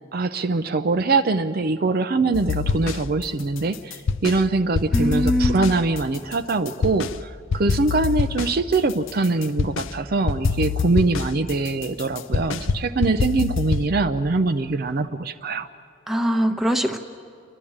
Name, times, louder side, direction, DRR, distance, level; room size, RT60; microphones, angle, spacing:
voice 1, 0.1-15.7, right 3 dB, 45° right, 8 dB, 0.5 m, -23 dB
sound 1, 2.3-3.2 3.6-4.4 4.7-7.2 7.5-9.9 10.3-13.9, left 5 dB, 65° left, 0.5 m, -25 dB
voice 2, 4.9-5.8 16.1-17.0, equal, ahead, 4 dB, 0.9 m, -22 dB
30.0 x 11.5 x 8.6 m, 2.5 s
head